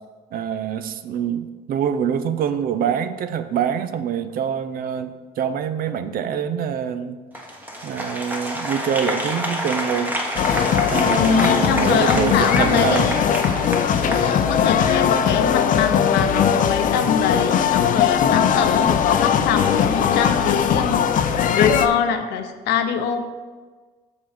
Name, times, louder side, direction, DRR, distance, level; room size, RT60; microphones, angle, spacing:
voice 1, 0.3-7.5 7.8-10.2 10.9-13.1, right 8 dB, 60° right, 11 dB, 0.6 m, -25 dB
Applause, 7.3-14.9, equal, 10° right, 1.2 m, -28 dB
sound 1, 10.4-21.9, left 8 dB, 50° left, 0.5 m, -19 dB
voice 2, 11.2-13.2 14.0-23.2, left 7 dB, 80° left, 7 dB, 0.8 m, -24 dB
6.3 x 5.5 x 5.0 m, 1.4 s
cardioid pair, 110°, 17 cm